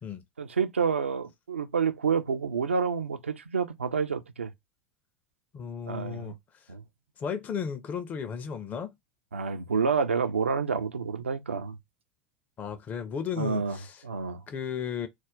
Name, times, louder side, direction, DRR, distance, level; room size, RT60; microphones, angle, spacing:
voice 1, 0.4-4.5 5.9-6.3 6.7-6.8 9.3-11.8 13.4-13.8 14.0-14.4, right 5 dB, 80° right, 0.4 m, -28 dB
voice 2, 5.5-6.3 7.2-8.9 12.6-14.0 14.5-15.1, left 7 dB, 25° left, 0.4 m, -34 dB
2.4 x 2.1 x 3.5 m
figure-of-eight pair, 80°, 7 cm